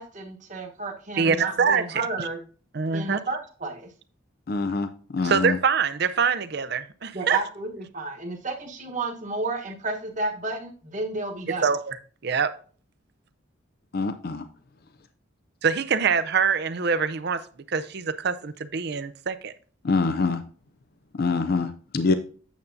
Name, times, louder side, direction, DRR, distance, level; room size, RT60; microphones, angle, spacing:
voice 1, 0.0-2.4 2.9-3.9 7.1-11.6, right 3 dB, 35° right, 1.1 m, -31 dB
voice 2, 1.2-2.0 2.7-3.2 5.2-7.4 11.6-12.0 12.2-12.5 15.6-17.4 17.7-19.5, right 6 dB, 50° right, 0.5 m, -24 dB
voice 3, 4.5-5.6 13.9-14.4 19.8-20.4 21.2-22.1, left 4 dB, 50° left, 0.4 m, -25 dB
8.9 x 7.0 x 2.6 m
head